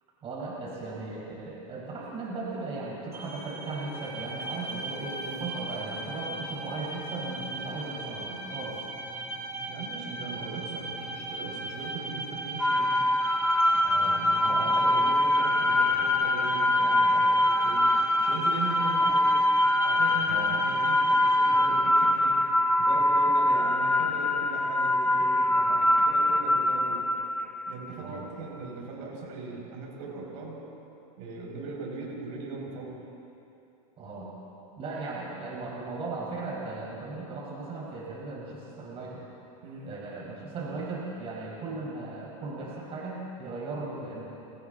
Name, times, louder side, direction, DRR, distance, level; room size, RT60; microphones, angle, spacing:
voice 1, 0.2-8.8 13.8-14.2 14.5-14.9 20.2-20.6 28.0-28.3 34.0-34.3 34.8-39.3 39.8-44.3, right 3 dB, 30° right, -4 dB, 5.3 m, -37 dB
sound 1, 3.1-21.7, right 2 dB, 15° right, 3.0 m, -38 dB
voice 2, 9.7-13.0 13.9-17.8 18.2-19.4 19.8-22.4 22.8-27.0 27.7-30.6 31.2-32.9 39.6-39.9, right 4 dB, 60° right, -2 dB, 6.6 m, -39 dB
sound 2, 12.6-27.7, left 1 dB, 5° left, 0.7 m, -24 dB
29.0 x 25.5 x 4.1 m, 2.8 s
supercardioid pair, 135°, 19 cm